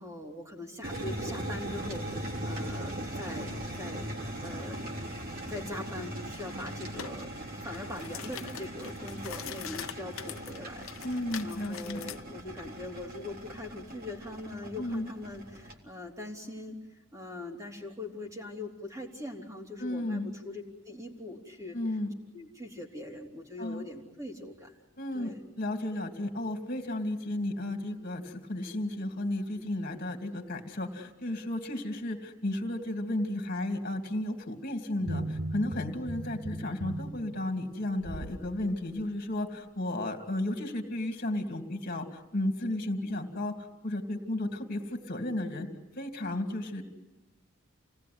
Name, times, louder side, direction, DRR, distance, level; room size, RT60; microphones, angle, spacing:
voice 1, 0.0-4.1 4.4-4.8 5.5-7.3 7.6-11.1 11.4-21.8 22.3-24.7 25.1-25.4, left 2 dB, 15° right, 2 dB, 3.4 m, -42 dB
sound 1, 0.8-15.7, right 1 dB, 45° right, 3.6 m, -39 dB
sound 2, 7.0-7.2 7.6-12.2, left 9 dB, 75° left, 0.9 m, -43 dB
voice 2, 11.0-12.1 14.8-15.1 19.8-20.3 21.7-22.1 23.6-23.9 25.0-42.1 42.3-43.5 43.8-45.7 46.0-46.8, left 1 dB, 40° left, 4 dB, 2.9 m, -33 dB
sound 3, 35.0-38.4 38.9-39.0, right 1 dB, 75° right, 1.5 m, -37 dB
29.0 x 19.0 x 9.6 m, 1.0 s
head